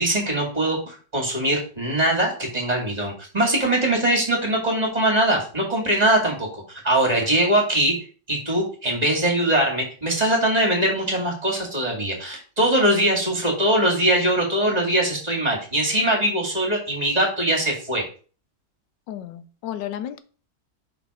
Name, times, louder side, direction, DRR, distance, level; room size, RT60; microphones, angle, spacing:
voice 1, 0.0-7.9 8.3-18.0, right 1 dB, 25° right, 2.1 m, -22 dB
voice 2, 19.1-20.2, left 11 dB, 90° left, 1.3 m, -32 dB
5.8 x 4.0 x 4.8 m
omnidirectional pair, 1.9 m